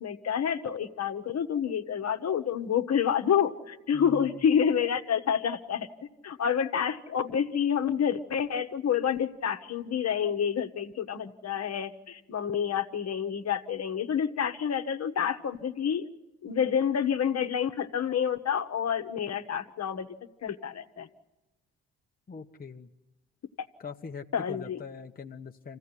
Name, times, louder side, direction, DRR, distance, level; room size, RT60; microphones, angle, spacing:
voice 1, 0.0-5.9 6.2-16.1 16.4-20.1 20.4-21.1 24.3-24.8, left 8 dB, 50° left, 7 dB, 1.3 m, -28 dB
voice 2, 3.9-4.4 22.3-22.9 23.8-25.8, left 5 dB, 25° left, 4 dB, 1.0 m, -42 dB
26.5 x 16.0 x 9.9 m, 1.1 s
hypercardioid pair, 55°, 33 cm